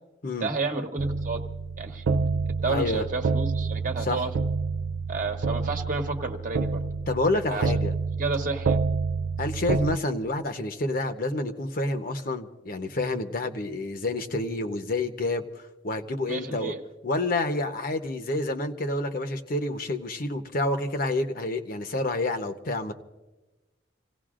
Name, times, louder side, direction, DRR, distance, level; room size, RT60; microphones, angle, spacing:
voice 1, 0.4-1.4 1.8-2.0 2.6-4.3 5.1-6.8 7.5-7.7 8.2-8.8 16.3-16.8, right 3 dB, 45° right, 3 dB, 1.2 m, -30 dB
sound 1, 1.0-10.0, right 4 dB, 85° right, 0.4 m, -28 dB
voice 2, 2.7-3.1 4.1-4.2 7.1-7.9 9.4-15.4 15.8-16.7 17.0-22.9, left 2 dB, 50° left, 6 dB, 0.9 m, -28 dB
27.5 x 17.0 x 2.5 m, 1.1 s
head